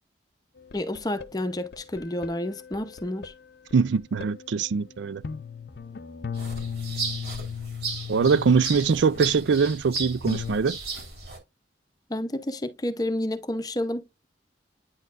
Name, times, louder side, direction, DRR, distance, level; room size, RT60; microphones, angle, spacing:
sound 1, 0.6-3.3 3.7-4.8 5.2-10.6, left 6 dB, 60° left, 0.5 m, -37 dB
voice 1, 0.7-3.3 12.1-14.3, left 1 dB, 20° left, 0.7 m, -30 dB
voice 2, 3.7-5.2 8.1-10.8, right 5 dB, 80° right, 0.4 m, -22 dB
sound 2, 6.3-11.4, right 4 dB, 60° right, 2.7 m, -35 dB
9.4 x 4.1 x 2.5 m
head